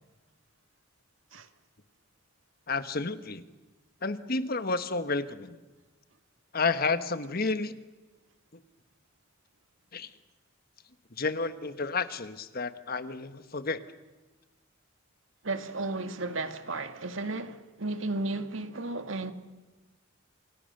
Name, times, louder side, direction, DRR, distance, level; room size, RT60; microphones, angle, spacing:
voice 1, 2.7-3.4 4.0-5.6 6.5-7.7 8.5-8.6 9.9-10.1 11.2-13.8, left 3 dB, 50° left, 1.4 m, -31 dB
voice 2, 15.4-19.3, right 2 dB, 75° right, 2.0 m, -34 dB
28.0 x 28.0 x 6.7 m
head